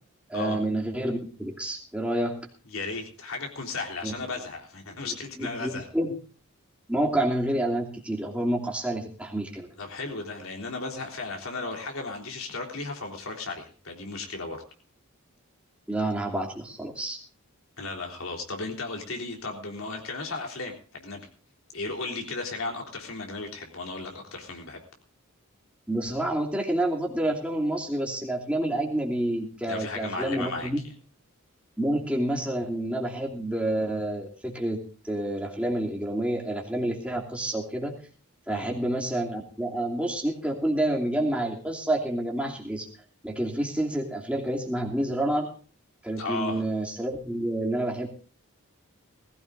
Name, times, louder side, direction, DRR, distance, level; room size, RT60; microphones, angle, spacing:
voice 1, 0.3-2.4 4.0-4.2 5.4-6.2 6.9-9.7 15.9-17.2 25.9-30.8 31.8-38.0 38.5-42.9 43.2-45.5 46.0-48.1, right 1 dB, 5° right, 0 dB, 2.8 m, -28 dB
voice 2, 2.7-5.9 9.8-14.6 17.8-21.3 21.7-24.8 29.7-30.7 38.5-38.7 46.2-46.6, left 3 dB, 70° left, 2 dB, 3.7 m, -35 dB
20.0 x 15.5 x 2.6 m, 0.40 s
head